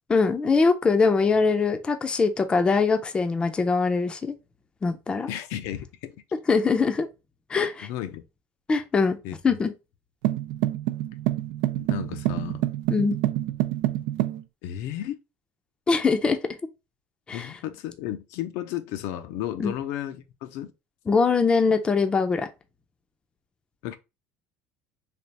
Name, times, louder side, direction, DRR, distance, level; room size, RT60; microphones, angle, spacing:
voice 1, 0.1-4.3 4.8-5.3 6.5-7.1 7.5-7.9 8.7-9.2 9.4-9.7 12.9-13.2 15.9-16.4 17.3-17.5 19.6-19.7 21.1-22.5, left 4 dB, 20° left, 0.4 m, -22 dB
voice 2, 5.3-6.2 7.8-8.2 9.2-9.6 11.7-12.6 14.6-15.2 17.3-20.7 23.8-24.0, left 11 dB, 70° left, 0.5 m, -33 dB
sound 1, 10.2-14.4, right 15 dB, 80° right, 0.4 m, -27 dB
3.4 x 2.4 x 3.9 m
cardioid pair, 140°, 5 cm